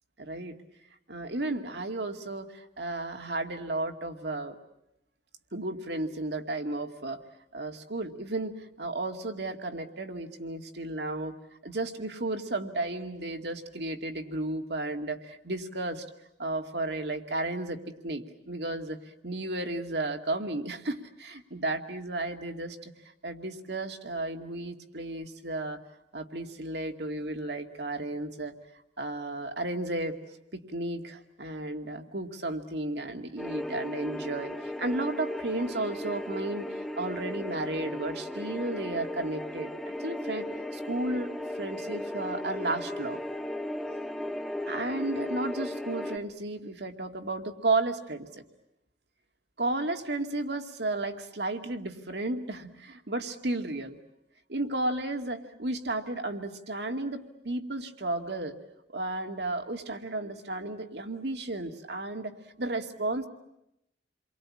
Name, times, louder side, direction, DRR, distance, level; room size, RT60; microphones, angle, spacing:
voice 1, 0.2-0.5 1.1-4.6 5.5-7.2 7.5-11.3 11.6-16.0 16.4-22.9 23.2-25.8 26.1-28.5 29.0-30.2 30.5-36.7 37.0-40.4 40.7-41.3 41.6-43.2 44.7-48.3 49.6-54.0 54.5-58.6 58.9-62.3 62.6-63.3, right 2 dB, 70° right, 5 dB, 2.3 m, -33 dB
sound 1, 33.4-46.2, left 1 dB, ahead, 1.5 m, -36 dB
29.0 x 23.5 x 8.7 m, 0.82 s
head